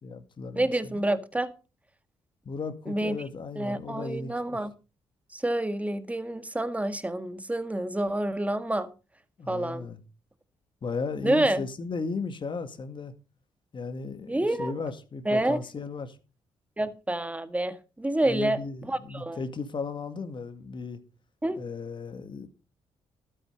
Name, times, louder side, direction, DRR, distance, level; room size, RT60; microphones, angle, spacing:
voice 1, 0.0-1.0 2.5-4.6 9.4-10.0 10.8-13.1 13.7-16.2 18.2-21.0 21.6-22.5, left 4 dB, 45° left, 2.1 m, -35 dB
voice 2, 0.6-1.5 2.9-3.2 3.6-4.7 5.3-8.9 9.5-9.9 11.2-11.6 14.3-14.7 15.3-15.6 16.8-19.4 21.4-21.6, right 1 dB, 15° right, 1.7 m, -28 dB
12.5 x 9.1 x 5.3 m
cardioid pair, 65°, 11 cm